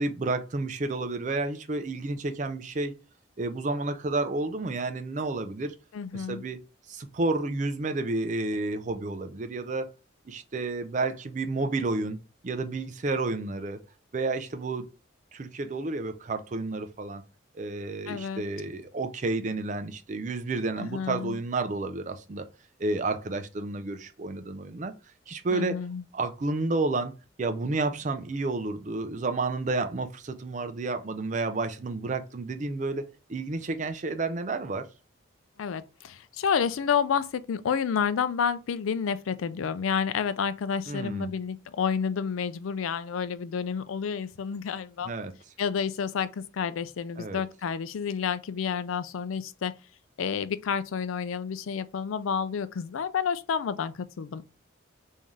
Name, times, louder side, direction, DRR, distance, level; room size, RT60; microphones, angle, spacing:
voice 1, 0.0-2.9 3.4-5.7 6.1-6.6 6.9-9.9 10.3-12.2 12.4-13.8 14.1-14.9 15.3-17.2 17.5-22.5 22.8-24.9 25.3-25.8 26.1-27.1 27.4-33.0 33.3-34.9 40.9-41.3 45.1-45.3 47.2-47.4, right 3 dB, 40° right, 0.4 m, -30 dB
voice 2, 5.9-6.4 18.1-18.4 20.8-21.4 25.5-26.0 35.6-45.1 45.6-49.7 50.2-54.5, left 6 dB, 90° left, 0.4 m, -30 dB
3.6 x 2.7 x 3.1 m
head